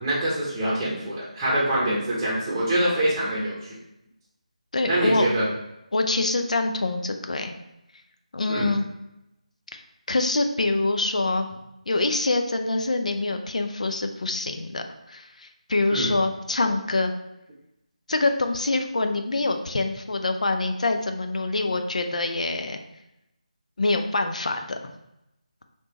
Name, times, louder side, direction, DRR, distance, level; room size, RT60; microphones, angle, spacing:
voice 1, 0.0-3.7 4.8-5.5 8.5-8.7 15.9-16.1, right 1 dB, 15° right, -8 dB, 0.8 m, -25 dB
voice 2, 4.7-5.3 5.9-7.5 8.3-8.9 9.7-9.8 10.1-11.5 11.9-17.1 18.1-22.8 23.8-24.8, left 2 dB, 65° left, 6 dB, 0.4 m, -25 dB
3.3 x 2.8 x 2.9 m, 0.87 s
figure-of-eight pair, 160°, 4 cm